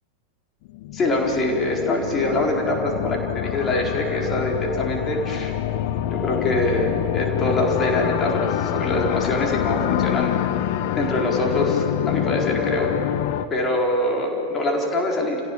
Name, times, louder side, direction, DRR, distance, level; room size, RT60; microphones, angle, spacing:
sound 1, 0.7-13.5, left 11 dB, 50° left, 1.0 m, -26 dB
voice 1, 0.9-5.5 6.1-10.4 11.0-12.9 13.5-15.4, left 1 dB, 25° left, 1 dB, 4.4 m, -24 dB
29.5 x 17.0 x 7.1 m, 2.6 s
figure-of-eight pair, 90°, 0 cm